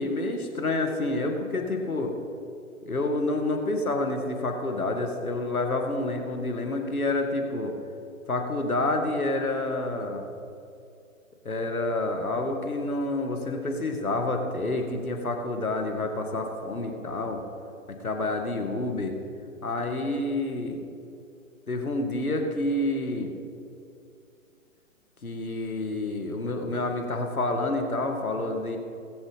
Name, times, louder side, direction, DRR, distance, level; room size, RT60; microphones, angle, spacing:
voice 1, 0.0-2.1 2.9-7.7 8.3-10.2 11.5-17.4 17.9-19.1 19.6-20.8 21.7-23.3 25.2-28.8, left 2 dB, 80° left, 3 dB, 2.0 m, -28 dB
19.0 x 7.5 x 5.2 m, 2.6 s
figure-of-eight pair, 130°, 42 cm